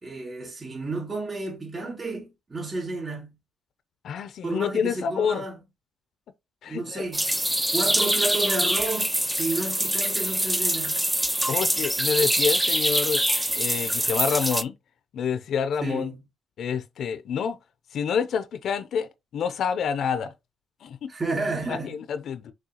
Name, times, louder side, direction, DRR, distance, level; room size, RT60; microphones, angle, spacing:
voice 1, 0.0-3.4 4.4-5.6 6.7-11.0 15.8-16.2 21.1-22.0, right 2 dB, 35° right, 2.7 m, -31 dB
voice 2, 4.0-5.4 6.6-7.0 11.5-13.2 13.6-14.7 15.1-16.1 16.6-17.6 17.9-20.3 20.8-21.1 21.7-22.5, left 7 dB, 65° left, 0.5 m, -28 dB
sound 1, 7.1-14.6, right 1 dB, 5° right, 0.4 m, -24 dB
6.2 x 2.4 x 2.8 m
cardioid pair, 90°, 0 cm